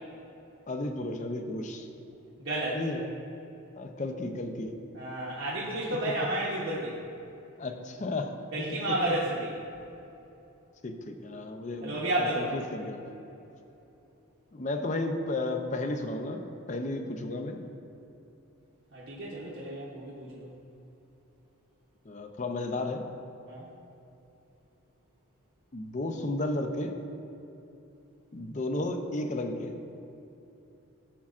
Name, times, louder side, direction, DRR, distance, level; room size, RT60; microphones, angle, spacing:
voice 1, 0.7-1.9 2.7-3.1 3.7-4.8 6.1-6.2 7.6-8.3 8.9-9.0 10.8-13.1 14.5-17.6 22.0-23.1 25.7-27.0 28.3-29.8, left 2 dB, 35° left, 6 dB, 0.5 m, -33 dB
voice 2, 2.4-2.8 4.9-7.0 8.5-9.5 11.8-12.5 18.9-20.5 23.5-23.7, right 1 dB, 55° right, -6 dB, 0.9 m, -31 dB
11.5 x 7.1 x 2.4 m, 2.9 s
head